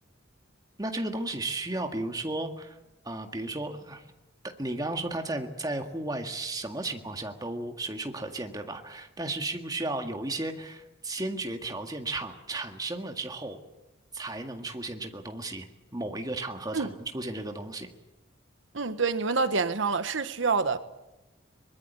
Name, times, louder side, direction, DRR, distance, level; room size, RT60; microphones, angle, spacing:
voice 1, 0.8-2.8 3.0-4.0 4.4-13.6 14.1-15.7 15.9-17.9, right 2 dB, 20° right, 1.8 m, -34 dB
voice 2, 18.7-20.8, right 4 dB, 70° right, 1.0 m, -27 dB
23.5 x 20.5 x 8.3 m
head